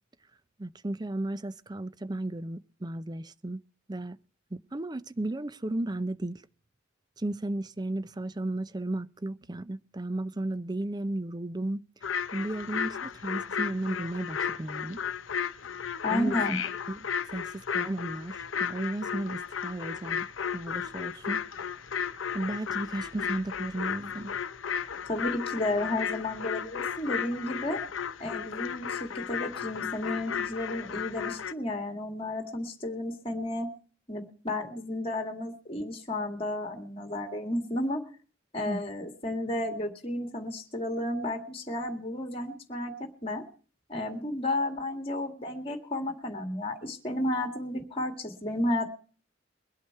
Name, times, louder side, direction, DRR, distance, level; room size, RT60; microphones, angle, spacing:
voice 1, 0.6-3.6 3.9-4.2 4.5-6.4 7.2-11.8 12.3-15.0 16.1-16.4 16.9-20.3 20.5-21.4 22.3-24.3 38.7-38.8, right 1 dB, 20° right, 0.5 m, -34 dB
sound 1, 12.0-31.5, left 7 dB, 85° left, 0.7 m, -34 dB
voice 2, 16.0-16.6 25.1-27.8 28.2-33.7 34.1-38.0 38.5-42.9 43.2-43.4 43.9-48.8, left 1 dB, 30° left, 2.0 m, -32 dB
22.5 x 8.5 x 4.6 m
head